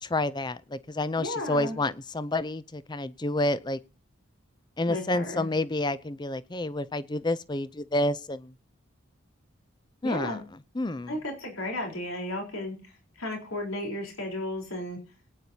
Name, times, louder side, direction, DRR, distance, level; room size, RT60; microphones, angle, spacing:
voice 1, 0.0-3.8 4.8-8.5 10.0-10.4 10.7-11.2, left 2 dB, 20° left, 15 dB, 0.5 m, -29 dB
voice 2, 1.2-1.8 4.9-5.5 10.0-10.4 11.1-12.8 13.2-15.0, left 1 dB, 85° left, 1 dB, 4.2 m, -34 dB
21.0 x 9.5 x 2.8 m, 0.35 s
head